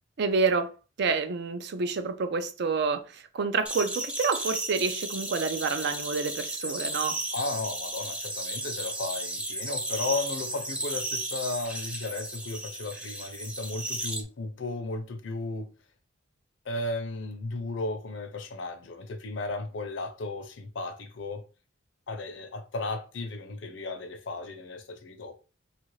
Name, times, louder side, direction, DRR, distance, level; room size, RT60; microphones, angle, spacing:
voice 1, 0.2-0.7 1.0-7.2, right 4 dB, 60° right, 0.4 m, -28 dB
sound 1, 3.7-14.2, right 1 dB, 5° right, 0.5 m, -34 dB
voice 2, 7.3-15.7 16.7-21.4 22.1-25.4, left 3 dB, 70° left, 0.6 m, -35 dB
3.1 x 2.4 x 3.1 m
head